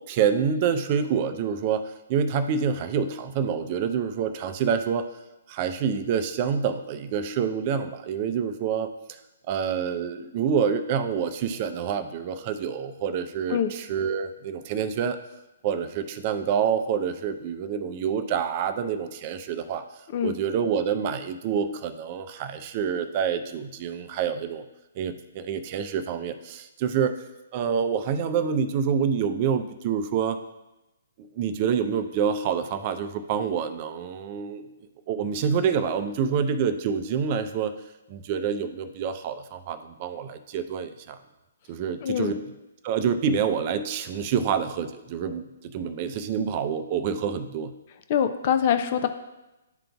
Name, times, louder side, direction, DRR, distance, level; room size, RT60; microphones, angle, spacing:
voice 1, 0.1-5.0 5.5-9.2 9.5-15.2 15.6-19.8 20.2-24.6 25.0-27.2 27.5-30.4 31.2-34.6 35.1-37.7 38.1-41.2 41.7-42.4 42.8-47.7, right 7 dB, 35° right, 9 dB, 0.5 m, -27 dB
voice 2, 42.0-42.3 48.1-49.1, left 8 dB, 45° left, 9 dB, 0.5 m, -24 dB
11.5 x 3.8 x 2.3 m, 0.99 s
hypercardioid pair, 145°, 0 cm